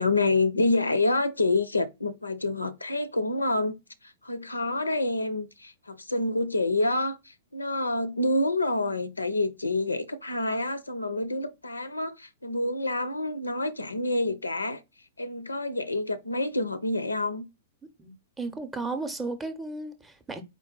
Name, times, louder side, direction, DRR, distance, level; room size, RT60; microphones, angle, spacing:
voice 1, 0.0-3.7 4.0-14.8 15.2-17.5, left 2 dB, 80° left, 0.5 m, -27 dB
voice 2, 18.0-20.4, right 3 dB, 10° right, 0.6 m, -34 dB
4.5 x 2.3 x 3.7 m
figure-of-eight pair, 105°, 0 cm